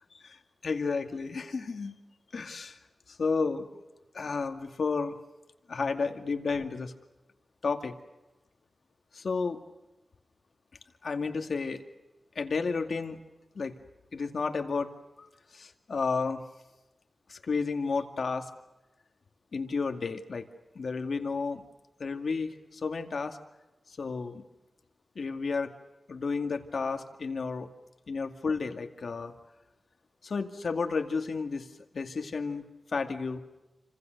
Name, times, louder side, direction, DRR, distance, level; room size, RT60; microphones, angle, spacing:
voice 1, 0.2-2.0 2.3-2.8 3.1-3.7 4.1-5.1 5.7-6.9 7.6-7.9 9.1-9.6 11.0-11.8 12.4-13.2 13.6-13.7 14.1-14.9 15.2-16.4 17.3-18.5 19.5-20.5 20.8-21.6 22.0-23.4 24.0-24.4 25.2-25.7 26.1-27.7 28.1-29.3 30.2-31.7 31.9-32.7 32.9-33.4, left 4 dB, 65° left, 6 dB, 2.2 m, -32 dB
29.0 x 25.5 x 6.6 m, 1.0 s
wide cardioid pair, 140°, 0 cm